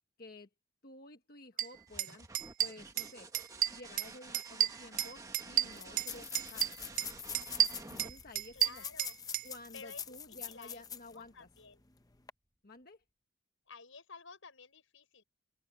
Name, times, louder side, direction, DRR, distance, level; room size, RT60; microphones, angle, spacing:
voice 1, 0.2-0.5 0.8-2.3 2.6-3.3 3.7-6.7 7.0-7.1 7.9-8.8 9.4-11.5 12.6-13.0, left 2 dB, 50° left, 1.3 m, -52 dB
sound 1, 1.6-1.7 2.0-2.1 2.3-3.1 3.3-4.1 4.3-6.1 6.4-7.1 7.3-9.5, right 11 dB, 40° right, 0.4 m, -31 dB
sound 2, 1.7-9.3 11.1-11.7, right 3 dB, 15° right, 1.2 m, -51 dB
sound 3, 4.7-4.8 4.9-5.0 5.7-11.2 11.6-11.7 12.1-12.3, left 7 dB, 20° left, 0.7 m, -45 dB
voice 2, 8.5-9.2 9.7-10.8 11.1-11.8 13.7-15.2, left 4 dB, 80° left, 5.8 m, -52 dB
open air
head